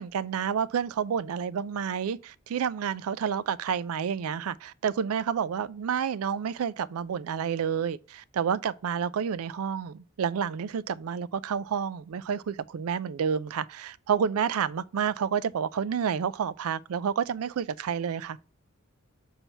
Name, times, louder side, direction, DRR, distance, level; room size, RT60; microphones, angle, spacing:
voice 1, 0.0-18.4, right 7 dB, 80° right, 0.4 m, -29 dB
7.1 x 2.8 x 5.5 m
head